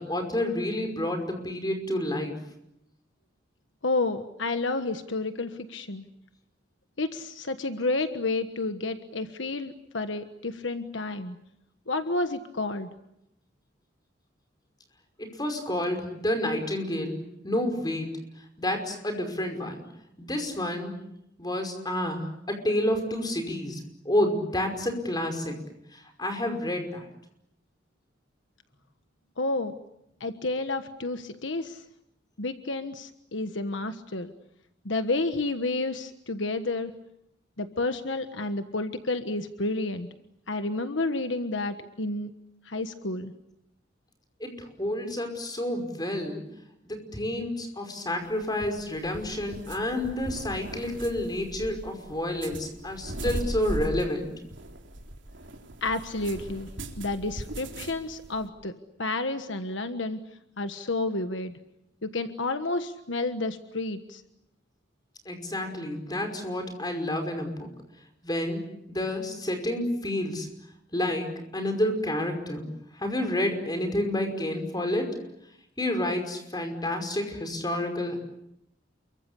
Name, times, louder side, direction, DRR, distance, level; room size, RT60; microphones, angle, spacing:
voice 1, 0.0-2.3 15.2-17.2 17.4-18.1 18.6-19.8 20.2-21.0 21.4-25.6 25.9-27.1 44.4-46.4 46.8-54.3 65.3-67.7 68.2-70.5 70.9-71.3 71.5-72.7 72.9-75.2 75.8-78.2, left 1 dB, 20° left, 5 dB, 5.5 m, -29 dB
voice 2, 3.8-6.0 7.0-11.4 11.9-12.9 29.4-29.7 30.2-31.8 32.4-34.3 34.8-36.9 37.6-40.1 40.5-42.3 42.6-43.3 55.8-56.7 56.9-58.7 59.0-60.2 60.6-61.6 62.0-64.2, left 2 dB, 70° left, 8 dB, 1.4 m, -30 dB
sound 1, 48.2-58.5, right 1 dB, 70° right, 3.8 m, -38 dB
29.0 x 23.5 x 8.3 m, 0.79 s
head